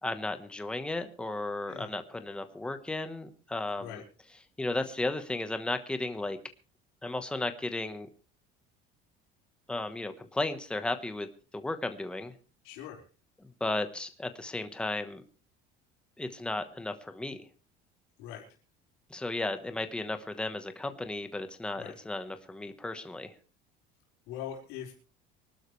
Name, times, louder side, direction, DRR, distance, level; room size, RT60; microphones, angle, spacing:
voice 1, 0.0-4.0 4.6-6.4 7.0-8.1 9.7-11.3 11.5-12.3 13.4-15.2 16.2-17.4 19.1-23.3, left 2 dB, 5° left, 8 dB, 1.2 m, -34 dB
voice 2, 12.6-13.0 18.2-18.4 21.7-21.9 24.3-25.0, left 10 dB, 90° left, -2 dB, 4.9 m, -41 dB
25.0 x 12.5 x 3.3 m, 0.36 s
cardioid pair, 170°, 19 cm